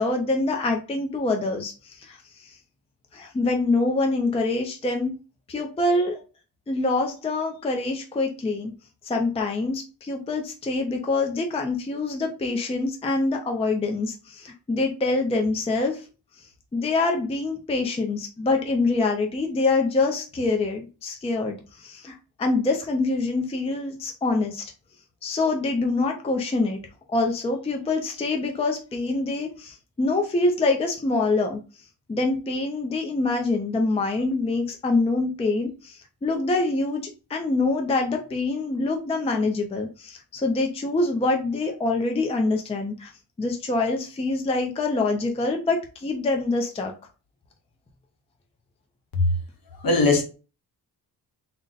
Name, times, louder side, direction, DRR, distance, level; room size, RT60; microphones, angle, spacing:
voice 1, 0.0-2.6 3.1-5.1 5.5-6.2 6.7-8.7 9.0-16.1 16.7-24.6 25.2-26.8 27.1-31.6 32.1-37.0 37.3-43.1 43.4-46.9, left 3 dB, 15° left, 0.4 m, -25 dB
voice 2, 49.8-50.2, left 3 dB, 55° left, 1.0 m, -19 dB
3.8 x 2.1 x 3.9 m
wide cardioid pair, 155°, 41 cm